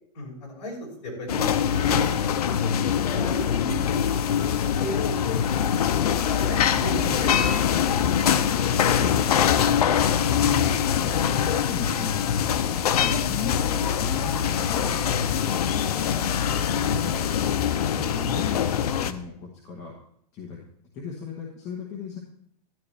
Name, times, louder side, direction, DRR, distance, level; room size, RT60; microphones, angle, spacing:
voice 1, 0.1-4.0 4.6-5.2 5.9-8.1 9.6-11.0 15.1-15.2, left 1 dB, 45° left, -3 dB, 5.5 m, -36 dB
sound 1, 1.3-19.1, left 8 dB, 65° left, 0.7 m, -23 dB
voice 2, 8.9-9.6 10.4-12.3 12.9-15.0 15.7-16.3 16.7-18.7 19.0-19.9 20.3-20.6 20.9-22.2, left 5 dB, 15° left, -3 dB, 1.1 m, -36 dB
12.5 x 10.5 x 3.3 m, 0.67 s
supercardioid pair, 180°, 21 cm